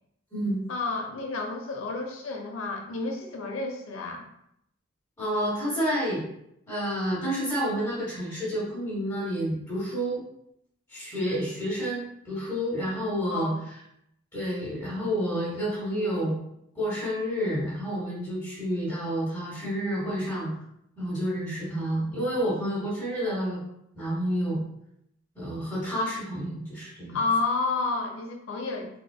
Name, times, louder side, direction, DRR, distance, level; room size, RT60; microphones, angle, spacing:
voice 1, 0.7-4.2 13.3-13.6 27.1-28.9, left 3 dB, 80° left, 2 dB, 0.7 m, -30 dB
voice 2, 5.2-6.2 6.7-10.2 10.9-13.5 14.3-16.3 16.7-20.5 21.0-23.6 23.9-24.6 25.3-27.2, equal, 15° left, -9 dB, 1.2 m, -29 dB
3.6 x 3.4 x 2.2 m, 0.78 s
head